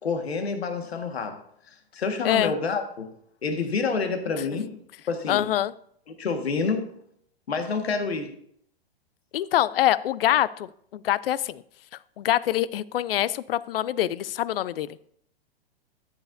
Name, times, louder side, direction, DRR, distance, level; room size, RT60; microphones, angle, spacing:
voice 1, 0.0-1.4 1.9-3.1 3.4-4.8 5.1-5.5 6.2-6.9 7.5-8.3, left 4 dB, 85° left, 6 dB, 1.6 m, -28 dB
voice 2, 5.3-5.7 9.3-11.6 12.2-15.0, left 12 dB, 65° left, 19 dB, 0.5 m, -25 dB
13.5 x 8.3 x 2.6 m, 0.67 s
hypercardioid pair, 125°, 31 cm